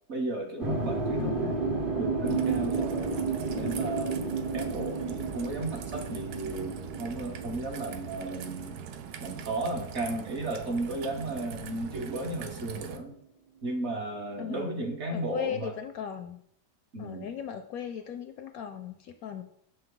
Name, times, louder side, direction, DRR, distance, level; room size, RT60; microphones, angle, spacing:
voice 1, 0.1-1.5 2.0-3.1 3.5-8.8 9.2-13.1 13.6-15.7 16.9-17.3, right 2 dB, 45° right, 1 dB, 1.2 m, -34 dB
sound 1, 0.6-10.7 11.0-12.6, right 4 dB, 30° right, 0.7 m, -33 dB
voice 2, 1.2-1.6 14.4-16.4 17.0-19.4, left 9 dB, 70° left, 8 dB, 0.9 m, -38 dB
Raindrop / Trickle dribble, 2.2-13.0, right 8 dB, 70° right, 1.1 m, -42 dB
6.7 x 5.8 x 3.8 m, 0.68 s
omnidirectional pair, 1.8 m